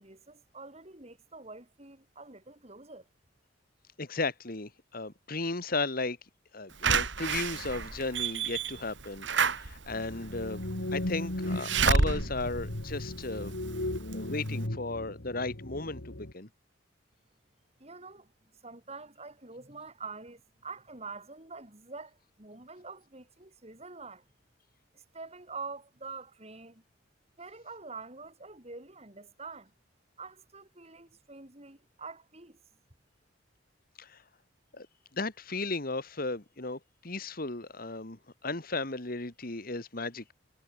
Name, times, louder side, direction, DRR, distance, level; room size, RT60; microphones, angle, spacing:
voice 1, 0.0-3.1 17.8-18.3 18.6-24.2 24.9-26.8 27.4-29.7 30.2-32.6, right 4 dB, 35° right, 4.4 m, -46 dB
voice 2, 4.0-6.2 6.5-10.6 10.9-13.5 14.1-16.5 34.0-34.2 34.7-34.9 35.1-40.3, left 3 dB, 50° left, 2.1 m, -35 dB
Slam / Alarm, 6.8-13.6 14.1-14.2 14.5-14.6, right 5 dB, 70° right, 2.3 m, -30 dB
sound 1, 9.9-16.3, left 1 dB, 75° left, 2.4 m, -36 dB
head